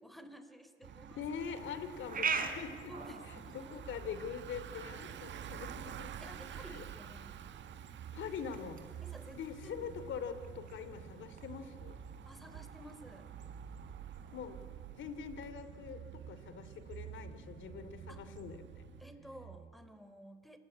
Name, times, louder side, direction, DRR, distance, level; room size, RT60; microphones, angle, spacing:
voice 1, 0.0-1.2 2.9-3.8 6.2-7.4 9.0-9.9 12.3-13.3 18.1-18.3 19.0-20.6, equal, ahead, 9 dB, 3.4 m, -53 dB
Bicycle, 0.8-19.0, right 9 dB, 65° right, 1.4 m, -51 dB
voice 2, 1.2-2.9 3.3-6.3 6.7-6.8 8.1-8.9 9.3-12.0 14.3-14.6 15.0-18.7, left 7 dB, 75° left, 11 dB, 2.8 m, -43 dB
sound 1, 1.4-15.5, right 6 dB, 45° right, 3.7 m, -45 dB
sound 2, 3.8-19.7, right 8 dB, 90° right, 2.9 m, -52 dB
27.5 x 20.5 x 9.7 m, 2.1 s
cardioid pair, 90°, 20 cm